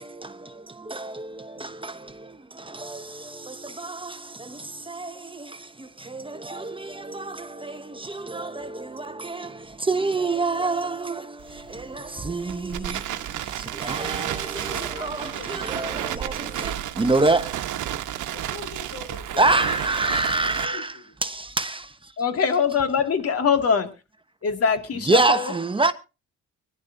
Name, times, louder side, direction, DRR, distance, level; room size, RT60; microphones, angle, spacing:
voice 1, 0.0-17.7 19.4-22.1 25.1-25.9, right 3 dB, 15° right, 1.0 m, -27 dB
Crackle, 11.4-20.6, right 12 dB, 75° right, 1.1 m, -32 dB
voice 2, 14.7-16.1 16.4-16.9 18.3-21.1, left 4 dB, 80° left, 3.9 m, -43 dB
voice 3, 22.2-23.9 24.4-25.5, left 6 dB, 50° left, 2.3 m, -22 dB
24.0 x 11.0 x 2.7 m
cardioid pair, 90°, 30 cm